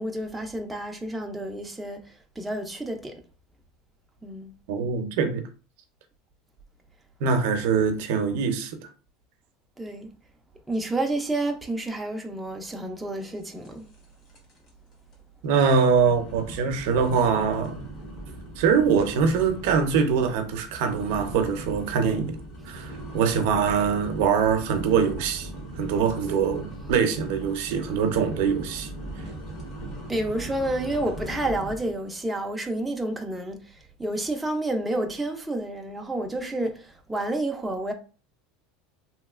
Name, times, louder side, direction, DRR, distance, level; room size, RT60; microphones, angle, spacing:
voice 1, 0.0-3.2 4.2-4.5 9.8-10.1 10.7-13.9 30.1-37.9, right 1 dB, 5° right, 0.4 m, -30 dB
voice 2, 4.7-5.4 7.2-8.8 15.4-17.8 18.6-22.4 22.7-25.5 25.8-28.9, right 6 dB, 70° right, 0.6 m, -23 dB
sound 1, 13.6-14.0 14.3-14.7 15.1-15.2 15.8-32.0, right 1 dB, 45° left, 1.2 m, -39 dB
3.0 x 2.8 x 2.4 m
supercardioid pair, 145°, 0 cm